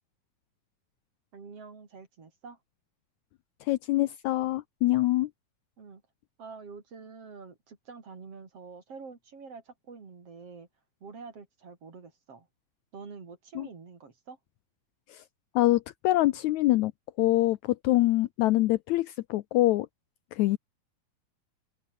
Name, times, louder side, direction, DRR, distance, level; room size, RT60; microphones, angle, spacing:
voice 1, 1.3-2.6 5.8-6.0 6.4-10.7 11.0-12.5 12.9-14.4, right 5 dB, 45° right, 4.3 m, -46 dB
voice 2, 3.7-5.3 13.6-13.7 15.1-15.2 15.5-16.9 17.2-19.9 20.3-20.6, left 16 dB, 85° left, 1.7 m, -25 dB
open air
omnidirectional pair, 4.1 m